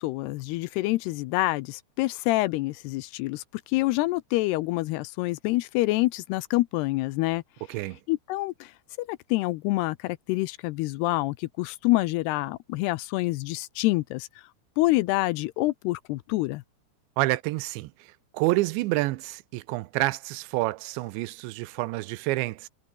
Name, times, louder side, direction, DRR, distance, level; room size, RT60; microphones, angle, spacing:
voice 1, 0.0-7.4 8.1-8.7 9.0-14.3 14.8-16.6, left 19 dB, 80° left, 2.5 m, -27 dB
voice 2, 7.7-8.0 17.2-22.7, right 20 dB, 90° right, 3.1 m, -28 dB
omnidirectional pair, 5.0 m